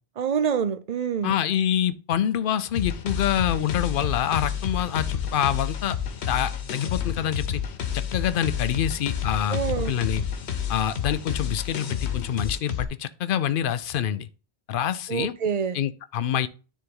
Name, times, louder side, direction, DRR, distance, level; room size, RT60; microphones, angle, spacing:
voice 1, 0.2-1.3 9.5-9.9 15.1-15.8, right 7 dB, 50° right, 0.5 m, -26 dB
voice 2, 1.2-6.0 6.3-7.6 7.9-9.6 9.9-10.3 10.7-14.3 14.7-15.3 15.7-16.5, left 10 dB, 60° left, 0.7 m, -26 dB
sound 1, 2.7-12.8, left 8 dB, 75° left, 1.1 m, -30 dB
9.5 x 3.7 x 3.8 m
omnidirectional pair, 1.1 m